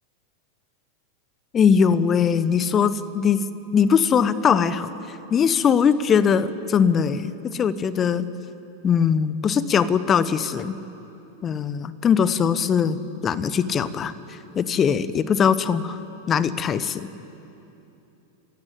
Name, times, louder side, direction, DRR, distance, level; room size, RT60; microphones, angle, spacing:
voice 1, 1.5-3.4 3.7-4.9 5.3-8.3 8.8-10.7 11.4-14.1 14.5-16.0 16.3-17.1, left 7 dB, 25° left, 15 dB, 1.1 m, -21 dB
29.5 x 16.5 x 9.0 m, 2.9 s
figure-of-eight pair, 90°, 0 cm